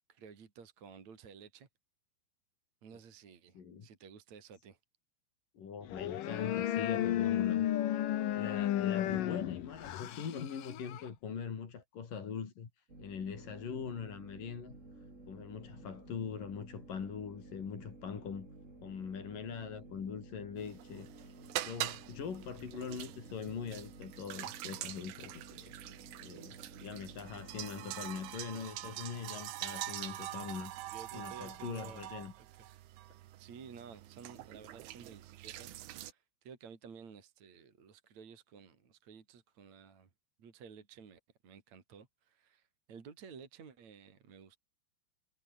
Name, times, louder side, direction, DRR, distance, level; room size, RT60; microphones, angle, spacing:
voice 1, 0.1-1.7 2.8-4.8 30.9-32.9 33.4-40.1 40.4-44.6, right 6 dB, 40° right, 3.7 m, -54 dB
voice 2, 3.5-3.9 5.5-7.7 8.4-14.8 15.3-18.5 18.8-21.3 21.6-25.7 26.2-30.7 31.1-32.3, left 6 dB, 45° left, 4.7 m, -42 dB
sound 1, 5.9-11.1, left 12 dB, 70° left, 2.1 m, -33 dB
sound 2, 12.9-28.3, right 2 dB, 15° right, 5.0 m, -54 dB
sound 3, 20.6-36.1, right 14 dB, 75° right, 3.8 m, -44 dB
omnidirectional pair, 5.9 m